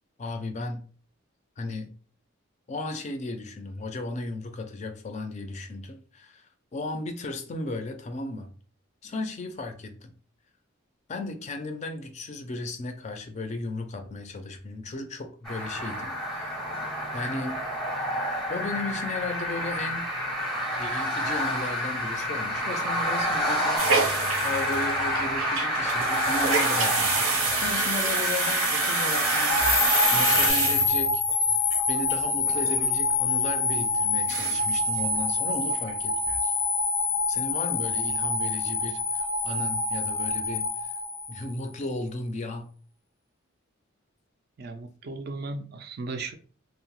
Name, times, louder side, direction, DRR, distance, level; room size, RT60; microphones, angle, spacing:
voice 1, 0.2-0.8 1.6-1.9 2.7-8.5 9.0-10.1 11.1-16.6 17.1-17.6 18.5-20.1 20.8-29.6 30.1-31.2 31.9-36.5 37.3-40.9 41.3-42.7, left 2 dB, 35° left, 0.3 m, -35 dB
sound 1, 15.4-30.5, equal, ahead, 0.6 m, -28 dB
sound 2, 23.8-31.3 31.7-31.8 32.1-32.2 32.4-32.8 33.2-33.3 33.8-33.9 34.2-34.7 35.0-35.1 35.4-35.9 36.3-36.4, right 4 dB, 90° right, 0.7 m, -28 dB
sound 3, 29.5-41.7, left 3 dB, 90° left, 0.5 m, -26 dB
voice 2, 44.6-46.3, right 3 dB, 50° right, 0.3 m, -36 dB
2.8 x 2.0 x 2.9 m
head